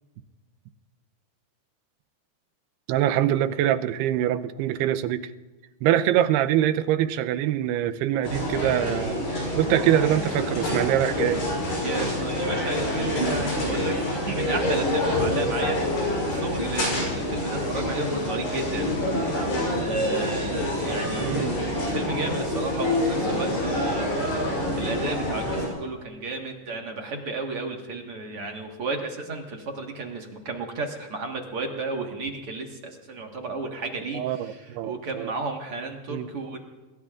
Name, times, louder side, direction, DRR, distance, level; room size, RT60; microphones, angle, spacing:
voice 1, 2.9-5.3 5.8-11.4 21.2-21.6 34.1-35.3 36.1-36.3, right 11 dB, 85° right, 11 dB, 2.7 m, -24 dB
sound 1, 8.2-25.7, left 1 dB, 80° left, 9.6 m, -27 dB
voice 2, 11.8-13.9 14.2-18.9 19.7-21.4 21.9-36.6, right 3 dB, 55° right, 2 dB, 1.7 m, -33 dB
27.5 x 21.5 x 2.5 m, 1.3 s
omnidirectional pair, 4.6 m